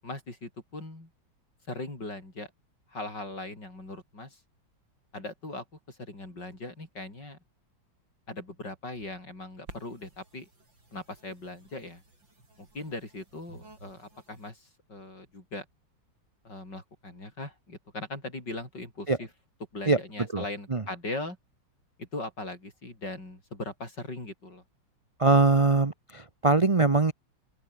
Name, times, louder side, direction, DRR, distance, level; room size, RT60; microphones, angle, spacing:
voice 1, 0.0-1.1 1.7-2.5 2.9-4.4 5.1-7.4 8.3-10.5 10.9-12.0 12.6-15.7 16.4-19.3 19.7-21.4 22.0-24.6, left 2 dB, 65° left, 8.5 m, -39 dB
sound 1, 9.7-14.5, right 2 dB, 75° right, 8.6 m, -53 dB
voice 2, 25.2-27.1, right 3 dB, 30° right, 0.6 m, -22 dB
open air
omnidirectional pair, 2.1 m